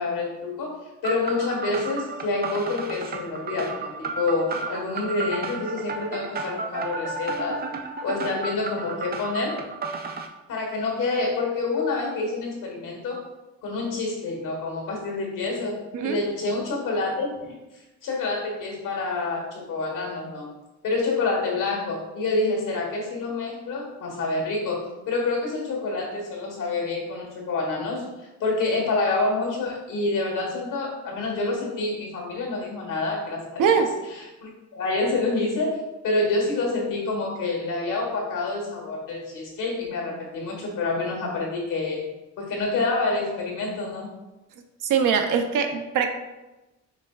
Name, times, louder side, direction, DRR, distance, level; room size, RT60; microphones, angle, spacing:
voice 1, 0.0-7.6 8.0-9.6 10.5-13.2 13.6-20.5 20.8-33.6 34.1-42.1 42.4-44.1, left 3 dB, 90° left, -1 dB, 1.4 m, -27 dB
sound 1, 1.0-10.3, right 4 dB, 30° right, 0.4 m, -33 dB
voice 2, 33.6-34.0 44.8-46.1, right 6 dB, 80° right, 6 dB, 0.6 m, -22 dB
5.6 x 3.7 x 2.3 m, 1.0 s
cardioid pair, 140°, 31 cm